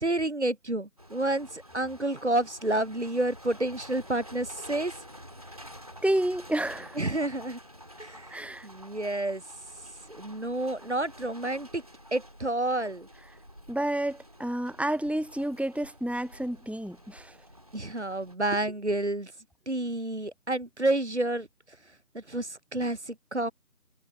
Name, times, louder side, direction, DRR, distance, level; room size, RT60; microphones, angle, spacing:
voice 1, 0.0-4.9 7.0-7.6 8.0-9.4 10.1-11.8 12.1-13.1 17.7-19.3 19.7-21.5 22.1-23.5, right 2 dB, 50° right, 0.6 m, -29 dB
sound 1, 1.0-18.4, equal, 25° right, 2.4 m, -49 dB
voice 2, 6.0-7.0 8.3-8.7 13.7-17.4, right 1 dB, 5° right, 0.3 m, -30 dB
figure-of-eight pair, 180°, 44 cm